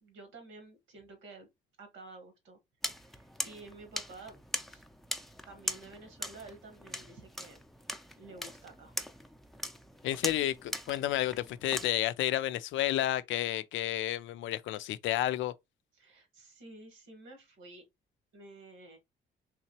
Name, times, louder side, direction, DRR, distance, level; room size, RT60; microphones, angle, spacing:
voice 1, 0.0-1.5 1.8-2.6 2.9-4.4 4.7-4.8 5.4-7.6 8.1-8.9 15.9-17.8 18.3-19.0, right 3 dB, 85° right, 1.6 m, -51 dB
sound 1, 2.8-11.9, equal, ahead, 0.5 m, -41 dB
voice 2, 10.0-15.5, left 13 dB, 75° left, 0.4 m, -31 dB
3.6 x 2.9 x 2.9 m
cardioid pair, 90°, 20 cm